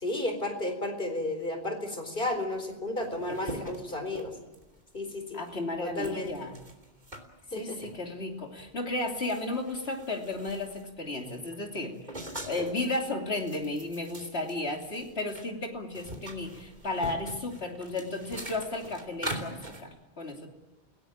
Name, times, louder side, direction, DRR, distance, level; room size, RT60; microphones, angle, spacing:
voice 1, 0.0-4.4 4.9-5.4 5.8-6.3 7.5-7.9, left 2 dB, 55° left, 5 dB, 4.2 m, -33 dB
sound 1, 2.6-2.7 2.8-4.8 5.3-5.5 6.0-7.2 7.8-8.0 8.6-8.7 9.0-10.9 11.2-12.8 13.3-15.5 15.7-19.8, right 1 dB, 45° right, 3.2 m, -42 dB
voice 2, 5.3-6.6 7.5-12.2 12.4-20.5, left 2 dB, 75° left, 2 dB, 3.3 m, -34 dB
29.0 x 17.0 x 8.8 m, 1.1 s
omnidirectional pair, 1.1 m